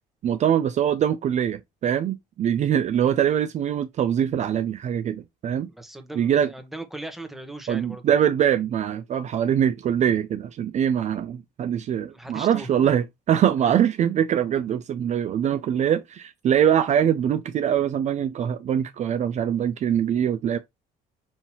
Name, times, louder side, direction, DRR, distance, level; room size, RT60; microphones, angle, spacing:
voice 1, 0.2-5.7 6.2-6.5 7.7-20.6, right 9 dB, 45° right, 0.4 m, -23 dB
voice 2, 5.7-8.0 12.1-12.9, right 2 dB, ahead, 0.9 m, -39 dB
5.6 x 2.7 x 2.9 m
cardioid pair, 110°, 17 cm